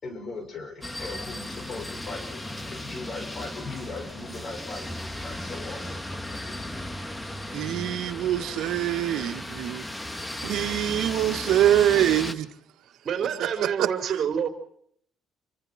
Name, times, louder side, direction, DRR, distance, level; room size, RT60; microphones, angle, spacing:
voice 1, 0.0-6.5, left 3 dB, 45° left, 6 dB, 6.2 m, -39 dB
sound 1, 0.8-12.3, left 1 dB, 10° left, 2.0 m, -36 dB
voice 2, 7.5-9.9 10.4-12.5, right 12 dB, 80° right, 8 dB, 1.9 m, -24 dB
voice 3, 12.8-14.5, right 8 dB, 50° right, 6 dB, 4.3 m, -28 dB
28.5 x 25.5 x 4.5 m, 0.66 s
cardioid pair, 115°, 0 cm